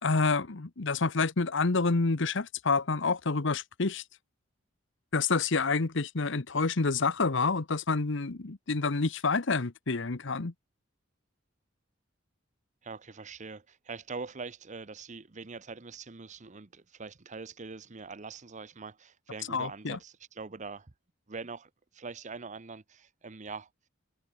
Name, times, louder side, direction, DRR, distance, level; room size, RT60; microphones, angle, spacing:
voice 1, 0.0-4.0 5.1-10.5 19.5-20.0, left 4 dB, 65° left, 1.0 m, -28 dB
voice 2, 12.8-20.9 21.3-23.7, right 4 dB, 40° right, 0.9 m, -43 dB
head